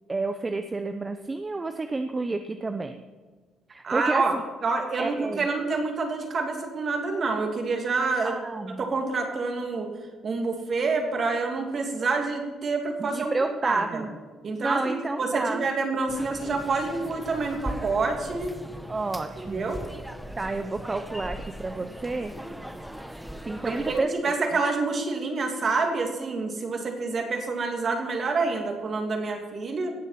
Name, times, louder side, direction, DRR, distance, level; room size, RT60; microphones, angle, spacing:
voice 1, 0.1-3.0 3.7-4.4 5.0-5.5 8.2-8.9 13.0-14.1 14.6-15.6 18.9-19.7 20.4-22.3 23.4-24.6, right 3 dB, 25° right, 8 dB, 0.7 m, -30 dB
voice 2, 3.8-4.4 4.6-8.4 8.8-9.9 10.2-13.3 13.6-14.0 14.4-18.5 19.4-19.8 23.6-29.9, right 3 dB, 45° right, 3 dB, 2.7 m, -27 dB
sound 1, 16.1-24.0, right 1 dB, 5° right, 1.0 m, -39 dB
18.0 x 7.2 x 6.0 m, 1.4 s
cardioid pair, 85°, 0 cm